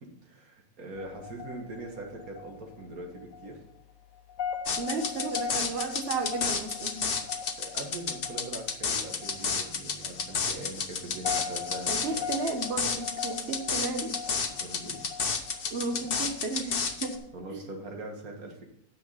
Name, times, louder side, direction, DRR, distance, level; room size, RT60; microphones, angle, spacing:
voice 1, 0.0-3.6 7.6-12.2 14.5-15.0 17.3-18.6, right 2 dB, 90° right, 2 dB, 2.2 m, -42 dB
sound 1, 1.0-17.4, left 7 dB, 70° left, 1.2 m, -41 dB
sound 2, 4.7-17.2, left 5 dB, 45° left, 1.0 m, -31 dB
voice 2, 4.8-7.1 11.9-14.2 15.7-17.3 17.5-17.6, right 3 dB, 50° right, 6 dB, 1.2 m, -33 dB
9.5 x 6.6 x 5.4 m, 0.78 s
omnidirectional pair, 1.5 m